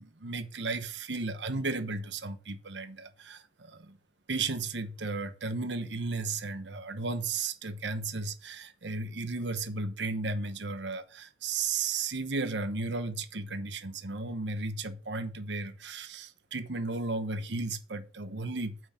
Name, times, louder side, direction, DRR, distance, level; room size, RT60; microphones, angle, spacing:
voice 1, 0.0-4.0 4.3-18.8, right 3 dB, 80° right, 1.1 m, -34 dB
7.4 x 5.9 x 5.6 m
head